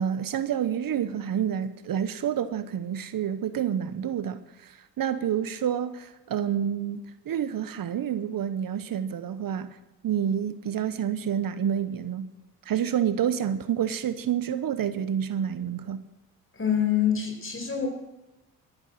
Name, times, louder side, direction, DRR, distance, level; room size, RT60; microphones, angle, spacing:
voice 1, 0.0-9.8 10.0-12.3 12.6-16.0, right 9 dB, 55° right, 1.0 m, -28 dB
voice 2, 16.5-17.9, left 9 dB, 30° left, 4.9 m, -25 dB
15.0 x 11.0 x 6.5 m
supercardioid pair, 60°, 41 cm